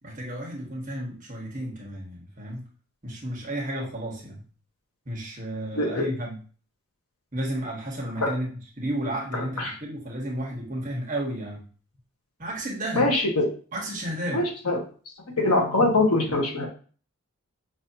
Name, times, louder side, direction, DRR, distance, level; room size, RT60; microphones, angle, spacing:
voice 1, 0.0-2.6 3.0-4.4 5.0-6.4 7.3-8.5 8.8-11.6 12.4-13.1 13.7-14.4, right 1 dB, 35° right, -2 dB, 1.3 m, -32 dB
voice 2, 5.7-6.1 8.2-8.3 9.3-9.7 13.0-13.5 14.3-14.8 15.4-16.7, left 2 dB, 90° left, 0 dB, 1.4 m, -23 dB
6.0 x 2.8 x 2.8 m, 0.40 s
head